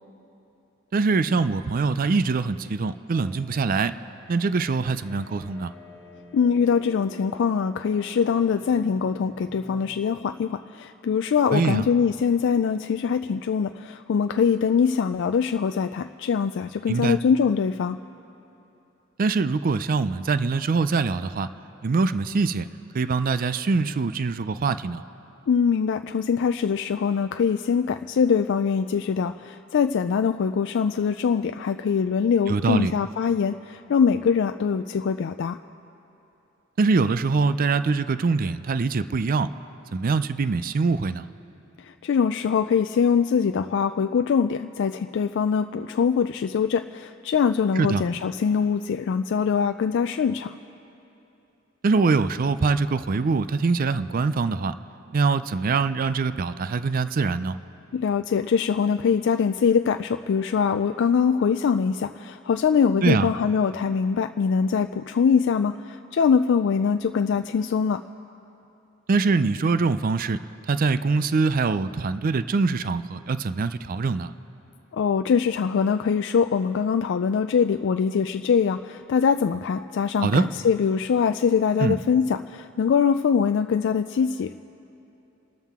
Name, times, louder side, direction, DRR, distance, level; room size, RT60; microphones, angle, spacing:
voice 1, 0.9-4.0 4.3-5.7 11.5-11.9 16.9-17.2 19.2-21.5 21.8-22.7 22.9-25.0 32.5-32.9 36.8-39.5 39.9-41.3 47.8-48.0 51.8-54.7 55.1-57.6 63.0-63.3 69.1-70.4 70.7-74.3 80.2-80.5 81.8-82.0, right 4 dB, 45° right, 13 dB, 0.4 m, -23 dB
sound 1, 3.1-10.0, equal, 25° right, 4.8 m, -48 dB
voice 2, 6.3-18.0 25.5-35.6 41.8-50.6 57.9-68.0 74.9-84.5, left 6 dB, 60° left, 8 dB, 0.3 m, -23 dB
28.5 x 13.0 x 3.6 m, 2.9 s
head